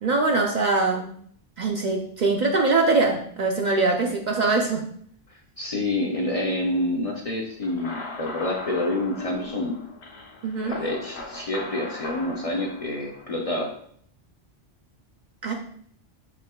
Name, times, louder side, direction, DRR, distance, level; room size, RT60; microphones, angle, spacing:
voice 1, 0.0-1.1 1.6-4.9 10.4-10.8 15.4-15.5, right 3 dB, 55° right, 1 dB, 0.5 m, -23 dB
voice 2, 5.3-9.8 10.7-13.8, left 1 dB, 40° left, 0 dB, 0.5 m, -28 dB
sound 1, 7.6-13.4, left 3 dB, 75° left, 1.1 m, -39 dB
6.2 x 3.6 x 2.2 m, 0.62 s
omnidirectional pair, 1.1 m